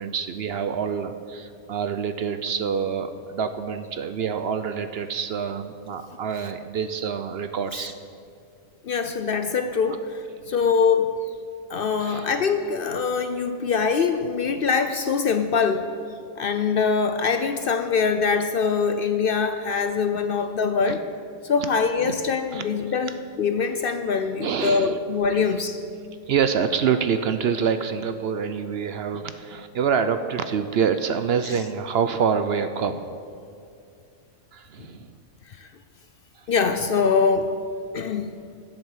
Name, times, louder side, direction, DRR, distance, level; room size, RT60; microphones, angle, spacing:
voice 1, 0.0-7.9 12.0-12.3 20.9-21.0 22.0-22.2 22.5-22.7 24.4-25.0 25.3-25.5 26.3-33.0 34.5-35.1, right 7 dB, 60° right, 10 dB, 0.8 m, -26 dB
voice 2, 8.8-11.2 11.7-15.9 16.4-21.0 21.4-25.8 35.5-35.7 36.5-37.5 37.9-38.4, left 5 dB, 55° left, 8 dB, 0.7 m, -23 dB
11.5 x 7.7 x 7.3 m, 2.4 s
omnidirectional pair, 1.3 m